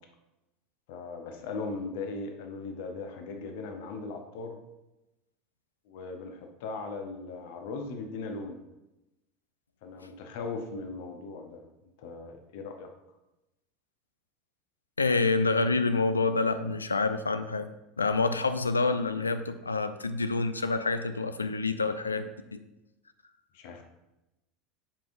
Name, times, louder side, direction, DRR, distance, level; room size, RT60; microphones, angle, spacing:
voice 1, 0.9-4.6 5.9-8.6 9.8-11.6 12.0-12.9 23.5-23.8, left 3 dB, 60° left, 5 dB, 0.8 m, -38 dB
voice 2, 15.0-17.7 18.0-22.6, left 3 dB, 80° left, 10 dB, 0.4 m, -27 dB
10.0 x 5.1 x 2.6 m, 0.95 s
figure-of-eight pair, 75°, 0 cm